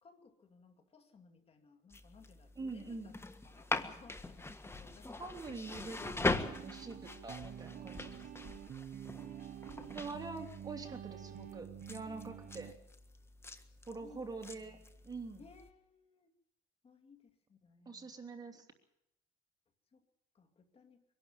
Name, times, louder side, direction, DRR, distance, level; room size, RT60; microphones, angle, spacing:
voice 1, 0.0-5.5 9.2-10.3 13.9-14.3 14.6-14.8 15.4-16.3 16.8-18.2 19.9-20.1 20.3-21.0, left 4 dB, 35° left, 5 dB, 2.4 m, -61 dB
sound 1, 1.9-15.7, left 2 dB, 15° left, 1.5 m, -42 dB
voice 2, 2.6-3.1 5.2-6.2 6.4-8.5 9.9-12.8 13.9-14.8 15.0-15.4 17.8-18.7, right 3 dB, 20° right, 3 dB, 3.1 m, -45 dB
sound 2, 6.2-12.7, right 10 dB, 50° right, 1.1 m, -48 dB
23.5 x 12.0 x 9.0 m, 0.80 s
cardioid pair, 110°, 17 cm